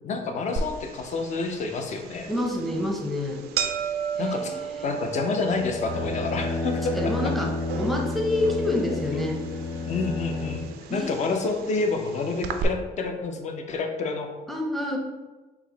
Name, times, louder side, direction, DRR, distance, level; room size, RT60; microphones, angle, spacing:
voice 1, 0.0-2.3 4.2-4.6 4.8-7.3 9.9-14.3, left 4 dB, 45° left, 4 dB, 0.6 m, -28 dB
sound 1, 0.6-12.6, right 7 dB, 70° right, 0.4 m, -35 dB
voice 2, 2.3-3.5 4.2-4.9 6.9-9.4 10.9-11.4 14.5-15.0, left 1 dB, ahead, 0 dB, 0.6 m, -28 dB
sound 2, 5.4-10.7, left 3 dB, 90° left, 0.9 m, -31 dB
4.7 x 2.0 x 3.9 m, 1.2 s
cardioid pair, 110°, 17 cm